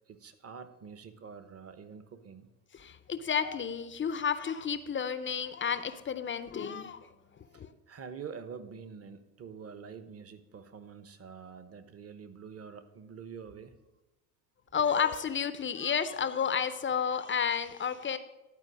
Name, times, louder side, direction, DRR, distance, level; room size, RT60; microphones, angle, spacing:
voice 1, 0.1-2.5 7.5-13.8, right 6 dB, 30° right, 11 dB, 1.0 m, -46 dB
voice 2, 2.7-7.1 7.4-7.7 14.7-18.2, left 7 dB, 25° left, 12 dB, 0.6 m, -31 dB
11.5 x 4.5 x 6.2 m, 1.0 s
hypercardioid pair, 70°, 44 cm